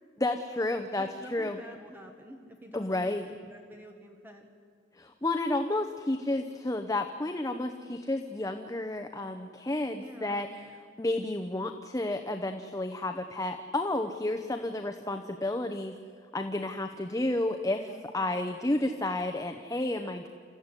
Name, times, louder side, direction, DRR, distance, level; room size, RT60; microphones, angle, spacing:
voice 1, 0.2-1.6 2.7-3.3 5.0-10.7 11.0-15.9 16.3-17.8 18.1-20.3, left 2 dB, 20° left, 6 dB, 0.9 m, -31 dB
voice 2, 1.0-4.4 10.0-10.4 17.7-18.1, equal, 10° right, 3 dB, 1.5 m, -48 dB
28.0 x 14.5 x 9.8 m, 2.1 s
head